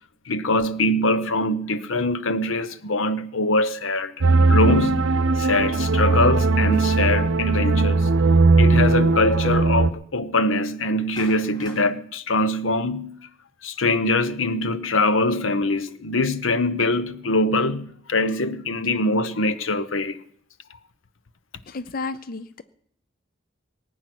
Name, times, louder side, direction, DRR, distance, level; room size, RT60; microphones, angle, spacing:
voice 1, 0.3-4.1 4.5-8.1 8.6-13.2 13.6-20.2, left 2 dB, 85° left, 0.9 m, -23 dB
sound 1, 4.2-9.9, right 3 dB, 85° right, 0.7 m, -18 dB
Clapping, 11.2-11.8, left 1 dB, 20° left, 3.7 m, -42 dB
voice 2, 21.7-22.6, left 3 dB, 45° left, 0.5 m, -32 dB
19.0 x 9.4 x 6.1 m
head